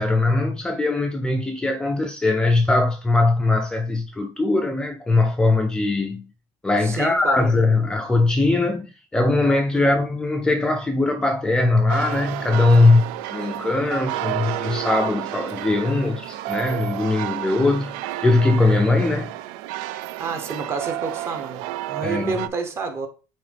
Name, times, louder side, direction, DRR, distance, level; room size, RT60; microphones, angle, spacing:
voice 1, 0.0-6.3 6.6-19.3 22.0-22.4, left 2 dB, 10° left, 0.5 m, -20 dB
voice 2, 6.8-7.6 9.7-9.9 20.2-23.1, right 4 dB, 30° right, 1.0 m, -29 dB
sound 1, 11.9-22.5, right 14 dB, 75° right, 0.4 m, -31 dB
8.8 x 3.1 x 3.4 m
cardioid pair, 155°, 9 cm